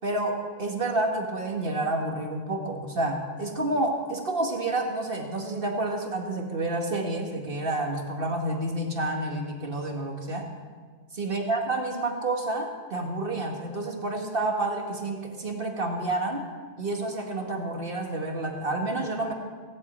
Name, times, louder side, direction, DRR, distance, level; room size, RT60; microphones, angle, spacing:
voice 1, 0.0-10.5 11.1-16.4 16.8-19.3, right 2 dB, 45° right, 2 dB, 2.1 m, -29 dB
17.0 x 8.4 x 8.7 m, 1.5 s
omnidirectional pair, 1.3 m